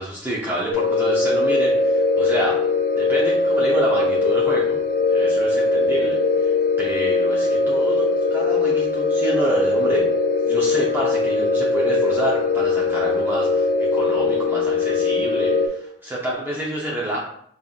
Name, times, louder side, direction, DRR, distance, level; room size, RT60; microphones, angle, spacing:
voice 1, 0.0-2.6 3.0-4.8 5.1-10.0 10.5-13.7 13.9-17.2, right 1 dB, 10° right, -5 dB, 0.6 m, -28 dB
sound 1, 0.7-15.7, left 3 dB, 50° left, 0.5 m, -20 dB
5.4 x 2.5 x 2.4 m, 0.66 s
head